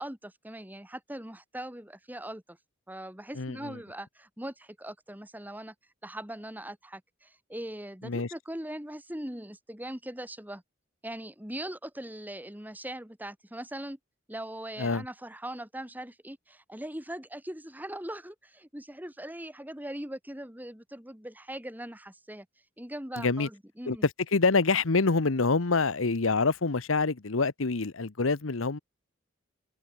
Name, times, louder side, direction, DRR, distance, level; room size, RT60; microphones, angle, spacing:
voice 1, 0.0-2.6 2.9-5.7 6.0-10.6 11.0-14.0 14.3-22.5 22.8-24.1, right 1 dB, 10° right, 2.6 m, -40 dB
voice 2, 3.4-3.8 8.0-8.3 14.8-15.0 23.2-23.5 23.9-24.0 24.3-28.8, left 4 dB, 90° left, 1.0 m, -26 dB
head